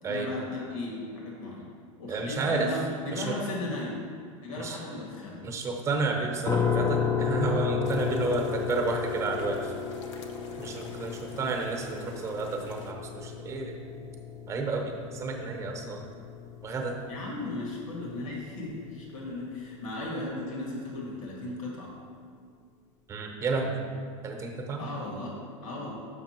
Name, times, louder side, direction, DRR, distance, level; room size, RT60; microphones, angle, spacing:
voice 1, 0.0-1.7 2.0-4.0 4.4-5.4 17.1-21.9 24.8-25.9, left 2 dB, 85° left, -2 dB, 1.8 m, -36 dB
voice 2, 2.1-2.7 3.1-3.3 4.6-4.8 5.4-9.7 10.6-13.7 14.5-16.0 16.6-17.0 23.1-23.8 24.2-24.8, right 3 dB, 20° right, 3 dB, 0.8 m, -31 dB
sound 1, 6.4-19.3, left 6 dB, 20° left, 0.4 m, -33 dB
sound 2, 7.8-12.9, left 3 dB, 65° left, 0.9 m, -50 dB
6.7 x 5.6 x 4.3 m, 2.1 s
supercardioid pair, 150°, 17 cm